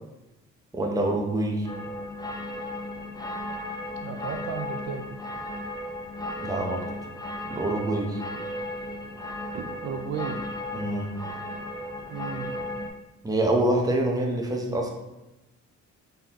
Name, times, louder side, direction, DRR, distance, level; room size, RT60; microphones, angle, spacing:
voice 1, 0.7-1.7 6.4-6.9 7.5-8.2 10.7-11.2 13.2-14.9, right 1 dB, 10° right, 0 dB, 0.8 m, -26 dB
sound 1, 1.6-12.9, left 1 dB, 15° left, 0.5 m, -35 dB
voice 2, 4.0-5.1 9.5-10.4 12.1-12.5, right 7 dB, 60° right, 4 dB, 0.5 m, -34 dB
3.8 x 3.7 x 2.9 m, 0.98 s
cardioid pair, 90°, 30 cm